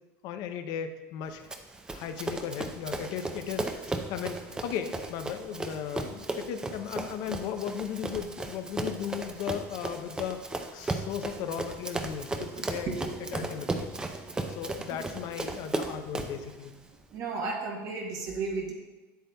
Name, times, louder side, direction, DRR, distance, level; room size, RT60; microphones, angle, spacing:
voice 1, 0.2-1.5 1.9-10.4 10.7-12.9 13.3-13.9 14.5-16.7, left 8 dB, 55° left, 8 dB, 0.6 m, -36 dB
Run, 1.5-16.4, right 2 dB, 10° right, 0.5 m, -36 dB
voice 2, 12.6-13.7 14.2-14.5 17.1-18.7, right 4 dB, 45° right, 0 dB, 1.0 m, -35 dB
8.1 x 7.8 x 2.3 m, 1.2 s
supercardioid pair, 140°, 8 cm